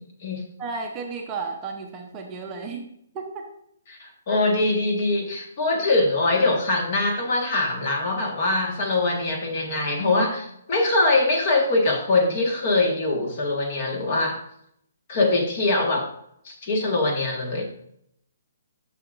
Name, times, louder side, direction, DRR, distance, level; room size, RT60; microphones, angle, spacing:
voice 1, 0.0-0.4 3.9-14.4 15.1-16.1 16.4-17.6, left 2 dB, 35° left, 2 dB, 1.4 m, -23 dB
voice 2, 0.6-2.9 3.1-3.5, right 4 dB, 15° right, 1 dB, 0.6 m, -33 dB
10.5 x 6.3 x 2.5 m, 0.72 s
hypercardioid pair, 170°, 0 cm